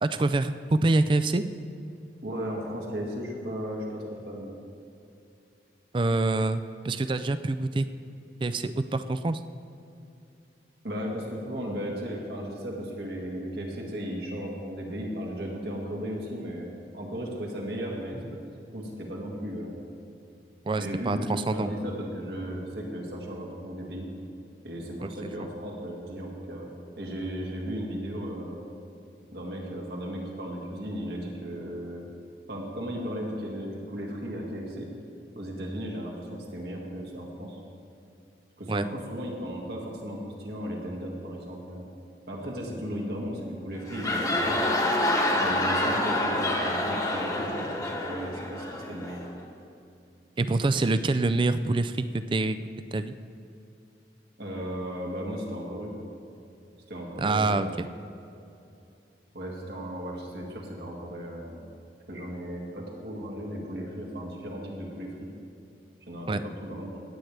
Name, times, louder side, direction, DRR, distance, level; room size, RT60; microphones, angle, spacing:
voice 1, 0.0-1.4 5.9-7.9 8.4-9.4 20.7-21.7 25.0-25.5 38.7-38.9 50.4-52.6 52.9-53.1 57.2-57.9 66.3-66.4, right 2 dB, 25° right, 12 dB, 0.4 m, -26 dB
voice 2, 2.2-4.6 10.8-16.7 16.9-18.3 18.7-19.8 20.8-24.1 24.6-26.7 27.0-28.6 29.3-32.1 32.5-34.9 35.4-37.6 38.6-41.9 42.3-44.7 45.4-49.2 54.4-55.9 56.9-57.8 59.3-61.6 62.1-65.2 66.1-67.0, equal, 65° right, -1 dB, 1.9 m, -35 dB
sound 1, 43.7-49.3, left 1 dB, 20° left, 1.2 m, -27 dB
17.0 x 8.8 x 3.3 m, 2.7 s
head